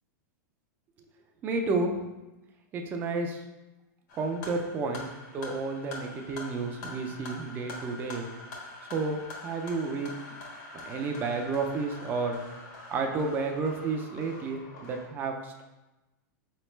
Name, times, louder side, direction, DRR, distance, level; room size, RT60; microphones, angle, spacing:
voice 1, 1.4-1.9 2.7-3.4 4.1-8.3 8.9-10.1 10.7-12.4 12.9-15.6, right 3 dB, 20° right, 4 dB, 0.4 m, -31 dB
sound 1, 4.1-15.1, left 2 dB, 65° left, 1.2 m, -44 dB
4.6 x 3.3 x 3.0 m, 1.0 s
supercardioid pair, 160°, 10 cm